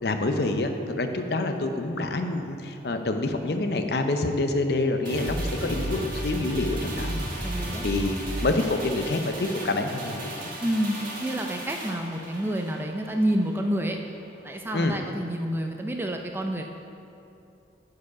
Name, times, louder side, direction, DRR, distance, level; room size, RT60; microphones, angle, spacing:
voice 1, 0.0-7.3 7.8-10.3 14.7-14.9, left 2 dB, 55° left, 6 dB, 0.6 m, -27 dB
sound 1, 5.0-13.6 13.9-14.1, right 1 dB, 45° right, 1.7 m, -34 dB
voice 2, 7.4-7.9 10.6-14.0 14.4-16.6, right 1 dB, 10° right, 3 dB, 0.4 m, -28 dB
9.3 x 4.8 x 5.9 m, 2.6 s
head